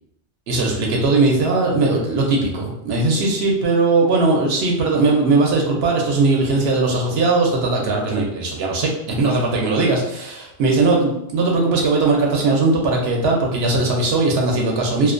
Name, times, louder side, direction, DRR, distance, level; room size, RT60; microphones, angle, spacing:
voice 1, 0.5-15.1, right 3 dB, 70° right, 0 dB, 0.8 m, -19 dB
2.4 x 2.1 x 2.4 m, 0.78 s
omnidirectional pair, 1.1 m